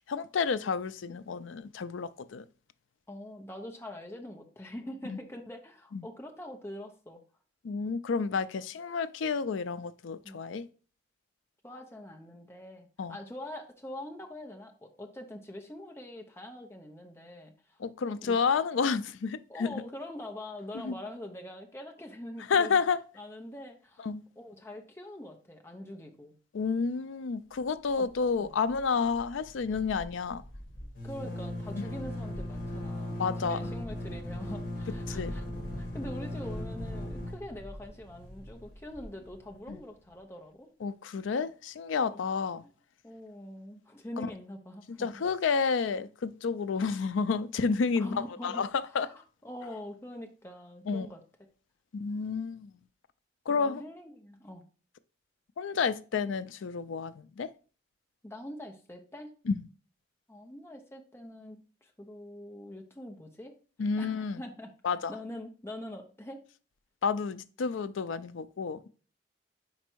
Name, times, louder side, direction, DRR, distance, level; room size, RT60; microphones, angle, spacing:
voice 1, 0.1-2.4 5.1-5.2 5.9-6.1 7.6-10.7 13.0-13.2 17.8-19.7 20.8-20.9 22.5-23.0 24.0-24.2 26.5-30.4 33.2-33.6 35.1-35.3 39.7-39.8 40.8-42.6 44.2-44.3 44.9-49.1 50.9-51.1 51.9-52.7 53.5-53.8 55.6-57.5 59.5-59.6 63.8-64.4 64.8-65.1 67.0-68.9, left 5 dB, 90° left, 0.4 m, -30 dB
voice 2, 3.1-7.2 8.5-8.6 10.2-10.4 11.6-18.4 19.5-22.8 23.1-24.1 24.4-26.3 28.0-28.1 28.4-28.5 31.0-35.4 35.8-40.7 42.1-42.3 42.6-42.7 43.0-45.2 47.9-51.2 53.5-54.7 58.2-59.3 60.3-63.5 64.0-64.7 65.1-66.4, left 1 dB, 15° left, 0.7 m, -44 dB
sound 1, 27.9-28.4 28.7-28.8 29.1-39.7, left 1 dB, 50° left, 1.6 m, -38 dB
5.1 x 4.5 x 4.5 m
head